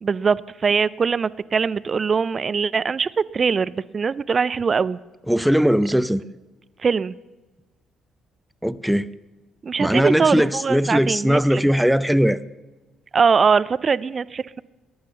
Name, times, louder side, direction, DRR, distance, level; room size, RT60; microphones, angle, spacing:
voice 1, 0.0-5.0 6.8-7.2 9.6-11.6 13.1-14.6, right 5 dB, 40° right, 18 dB, 0.5 m, -22 dB
voice 2, 5.3-6.2 8.6-9.1 9.8-12.4, equal, ahead, 15 dB, 0.7 m, -19 dB
20.0 x 11.0 x 5.7 m, 1.2 s
hypercardioid pair, 50°, 0 cm